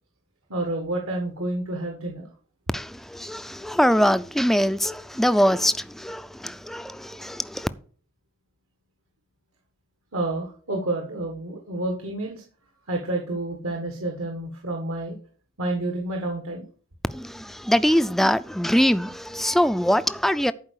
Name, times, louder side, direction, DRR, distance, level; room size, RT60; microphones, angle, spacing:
voice 1, 0.5-2.3 10.1-12.4 12.9-15.1 15.6-16.6, right 2 dB, 80° right, 1.7 m, -29 dB
voice 2, 2.7-7.7 17.1-20.5, equal, ahead, 0.3 m, -23 dB
11.5 x 4.7 x 6.3 m
head